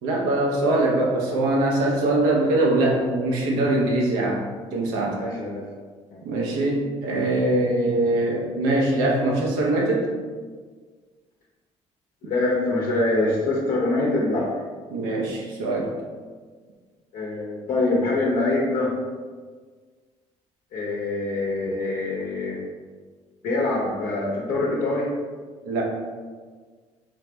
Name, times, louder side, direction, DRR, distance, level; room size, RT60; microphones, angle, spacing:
voice 1, 0.0-4.4 4.7-5.2 6.2-10.1 14.9-15.9 25.6-25.8, right 2 dB, 85° right, -2 dB, 1.0 m, -22 dB
voice 2, 5.2-5.7 6.1-6.2 12.2-14.5 17.1-18.9 20.7-22.6 23.4-25.1, left 2 dB, 70° left, -4 dB, 0.9 m, -24 dB
4.0 x 3.3 x 3.9 m, 1.5 s
hypercardioid pair, 60°, 15 cm